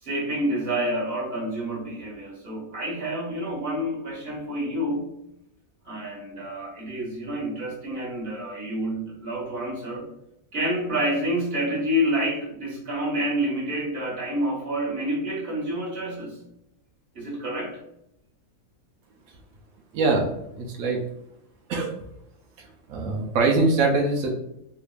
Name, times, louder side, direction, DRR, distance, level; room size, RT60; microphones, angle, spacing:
voice 1, 0.0-5.1 5.8-10.0 10.5-16.4 17.1-17.8, equal, 45° right, -3 dB, 1.3 m, -28 dB
voice 2, 19.9-20.3 20.5-21.0 21.7-21.9 22.6-24.3, right 3 dB, 75° right, 1 dB, 1.0 m, -23 dB
3.3 x 3.0 x 2.4 m, 0.80 s
omnidirectional pair, 1.5 m